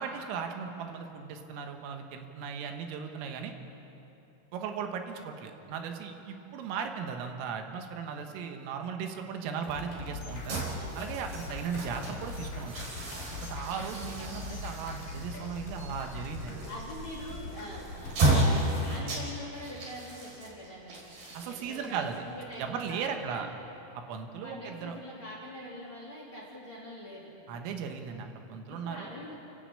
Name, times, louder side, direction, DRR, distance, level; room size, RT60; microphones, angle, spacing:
voice 1, 0.0-3.5 4.5-10.6 11.0-12.8 13.5-16.6 21.4-22.2 22.6-23.5 24.1-25.0 27.5-29.1, right 6 dB, 85° right, 4 dB, 4.0 m, -37 dB
sound 1, 9.6-18.5, left 3 dB, 45° left, 4.4 m, -42 dB
sound 2, 10.3-23.4, right 1 dB, 45° right, 5.7 m, -34 dB
voice 2, 13.7-14.4 16.6-23.5 24.4-27.6 28.7-29.4, equal, 30° left, -5 dB, 3.3 m, -44 dB
29.5 x 11.0 x 8.6 m, 2.9 s
omnidirectional pair, 5.8 m